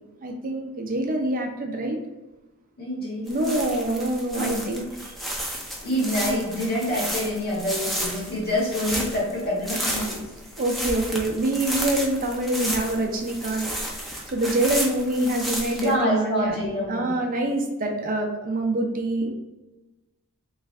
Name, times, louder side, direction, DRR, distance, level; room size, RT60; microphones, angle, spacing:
voice 1, 0.2-2.0 3.3-4.9 6.3-6.4 10.6-13.7 14.0-16.5 16.9-19.3, right 1 dB, 40° right, 2 dB, 0.6 m, -25 dB
voice 2, 2.8-3.7 4.3-4.7 5.8-10.3 15.8-17.2, left 1 dB, 50° left, -7 dB, 1.5 m, -27 dB
sound 1, 3.3-15.9, equal, ahead, 0.6 m, -32 dB
3.3 x 3.1 x 3.6 m, 1.1 s
head